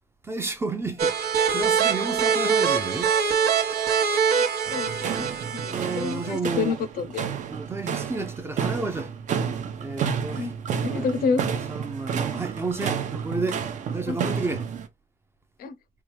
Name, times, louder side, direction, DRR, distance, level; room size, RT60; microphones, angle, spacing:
voice 1, 0.2-3.1 5.7-6.8 7.5-9.1 9.8-13.6 13.9-14.7, right 3 dB, 15° right, 0.5 m, -32 dB
sound 1, 1.0-6.4, right 7 dB, 90° right, 1.0 m, -24 dB
voice 2, 4.7-7.2 10.4-10.5 10.8-11.4 14.1-14.2 15.6-15.7, left 5 dB, 70° left, 0.6 m, -29 dB
sound 2, 4.7-14.9, right 7 dB, 50° right, 0.7 m, -31 dB
4.6 x 2.4 x 3.0 m
cardioid pair, 175°, 16 cm